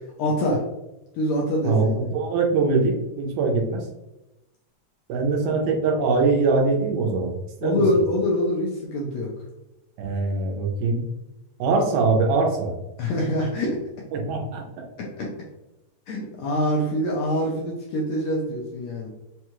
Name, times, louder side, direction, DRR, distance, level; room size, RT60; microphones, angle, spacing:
voice 1, 0.2-0.6 1.1-1.9 7.6-9.3 13.0-13.8 15.0-15.3 16.1-19.1, left 1 dB, 75° left, -2 dB, 1.6 m, -24 dB
voice 2, 1.6-3.8 5.1-7.3 7.6-7.8 10.0-11.1 11.6-12.7 14.1-14.6, right 4 dB, 80° right, 1 dB, 2.2 m, -22 dB
5.5 x 2.3 x 3.0 m, 0.93 s
omnidirectional pair, 3.7 m